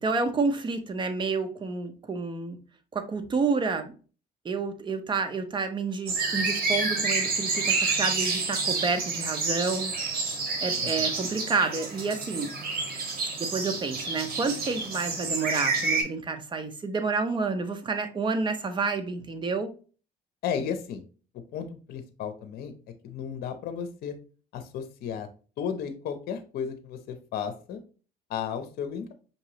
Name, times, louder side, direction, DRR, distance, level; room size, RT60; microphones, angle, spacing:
voice 1, 0.0-2.6 2.9-3.9 4.4-9.9 10.6-12.5 13.4-19.7, right 4 dB, 30° right, 0.7 m, -29 dB
sound 1, 6.1-16.0, right 4 dB, 65° right, 1.3 m, -29 dB
voice 2, 10.8-11.1 20.4-21.0 21.5-22.7 23.0-24.2 24.5-25.3 25.6-27.8 28.3-29.1, left 7 dB, 65° left, 0.7 m, -34 dB
5.3 x 2.9 x 2.8 m
cardioid pair, 110°, 17 cm